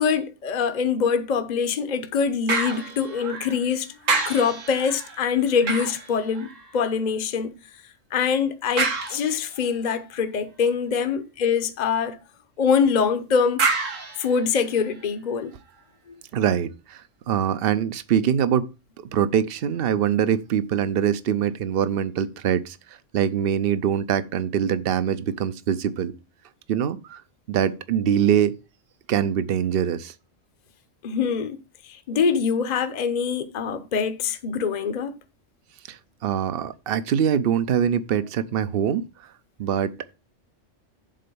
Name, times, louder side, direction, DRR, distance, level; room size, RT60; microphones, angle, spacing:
voice 1, 0.0-4.0 4.2-7.6 8.1-12.2 12.6-13.6 14.2-15.5 31.0-31.6 31.8-35.2, left 6 dB, 40° left, 0.8 m, -24 dB
sound 1, 2.5-3.7 4.0-6.9 8.8-9.7 13.6-15.0 15.6-15.7, right 4 dB, 90° right, 1.9 m, -29 dB
voice 2, 16.3-17.0 17.3-18.7 19.1-22.8 23.1-26.1 26.7-27.2 27.5-28.5 29.1-30.1 35.9-39.1 39.6-40.1, right 9 dB, 55° right, 0.8 m, -23 dB
7.6 x 4.3 x 6.9 m
omnidirectional pair, 1.3 m